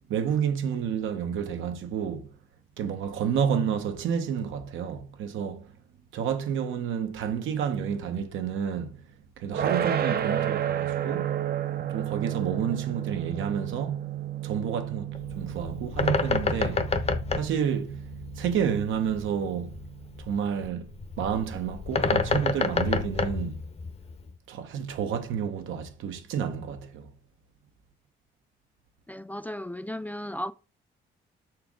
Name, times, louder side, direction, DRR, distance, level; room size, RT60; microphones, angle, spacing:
voice 1, 0.1-2.3 2.8-5.7 6.1-9.0 9.4-11.4 11.9-14.0 14.4-16.9 17.3-18.0 18.4-19.7 20.2-20.9 21.2-23.6 24.5-27.1, right 8 dB, 80° right, 1.1 m, -30 dB
sound 1, 9.5-20.5, right 10 dB, 50° right, 0.7 m, -32 dB
Bird, 15.1-24.3, left 4 dB, 30° left, 0.8 m, -29 dB
voice 2, 29.1-30.5, left 1 dB, 10° left, 0.3 m, -35 dB
6.1 x 4.5 x 3.7 m
cardioid pair, 90°, 20 cm